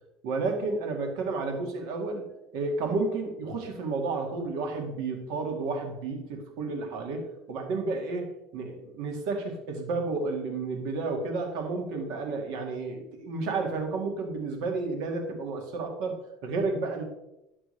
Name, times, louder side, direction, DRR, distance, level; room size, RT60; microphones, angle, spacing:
voice 1, 0.2-2.2 2.5-8.3 8.5-16.2 16.4-17.0, right 3 dB, 70° right, 2 dB, 1.8 m, -31 dB
11.5 x 6.0 x 3.2 m, 0.91 s
cardioid pair, 150°, 0 cm